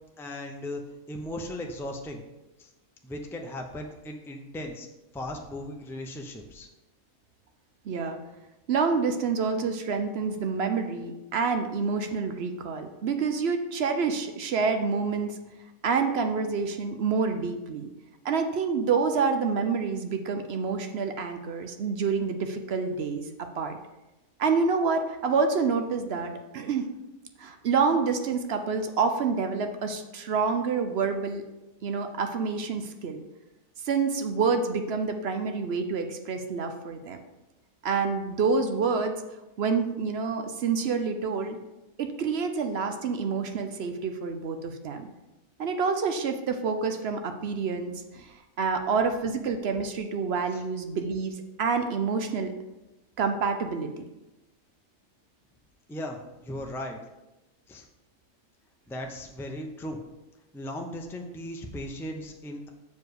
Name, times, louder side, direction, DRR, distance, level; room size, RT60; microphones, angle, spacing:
voice 1, 0.2-0.8 1.1-2.2 2.6-2.7 3.0-4.9 5.1-6.7 50.5-50.6 55.9-57.0 57.7-57.9 58.9-60.0 60.5-62.7, left 1 dB, 5° left, 2 dB, 0.3 m, -37 dB
voice 2, 7.9-8.2 8.7-15.4 15.8-17.9 18.2-23.8 24.4-26.9 27.4-31.4 31.8-33.2 33.8-37.2 37.8-39.1 39.6-41.6 42.0-45.1 45.6-47.9 48.2-48.3 48.6-52.5 53.2-54.0, right 5 dB, 55° right, 6 dB, 0.8 m, -27 dB
6.9 x 4.9 x 4.8 m, 1.0 s
omnidirectional pair, 1.4 m